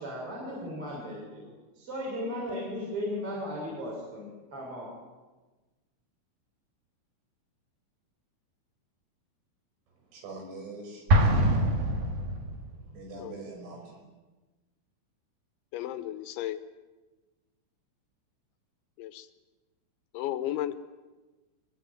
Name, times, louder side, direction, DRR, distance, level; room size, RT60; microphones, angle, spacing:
voice 1, 0.0-4.9, equal, 25° right, -3 dB, 7.1 m, -36 dB
voice 2, 10.1-11.1 12.1-14.0, right 3 dB, 65° right, 3 dB, 8.2 m, -44 dB
Explosion, 11.1-12.8, right 1 dB, 45° right, 3.3 m, -24 dB
voice 3, 15.7-16.6 19.0-19.3 20.1-20.8, left 12 dB, 75° left, 12 dB, 2.9 m, -34 dB
24.5 x 22.5 x 9.2 m, 1.2 s
omnidirectional pair, 6.0 m